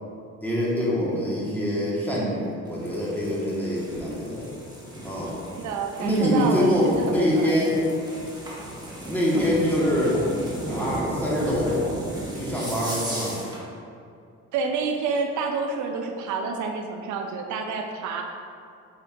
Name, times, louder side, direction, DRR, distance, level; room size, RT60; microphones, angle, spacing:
voice 1, 0.4-4.5 5.0-5.4 6.0-7.8 9.1-10.2 10.7-11.7 12.3-13.4, equal, 5° left, -7 dB, 1.3 m, -24 dB
sound 1, 2.7-13.6, right 1 dB, 15° right, 1.3 m, -34 dB
voice 2, 5.6-7.5 14.5-18.2, right 4 dB, 75° right, 3 dB, 0.5 m, -28 dB
5.0 x 4.3 x 2.4 m, 2.4 s
cardioid pair, 90°, 30 cm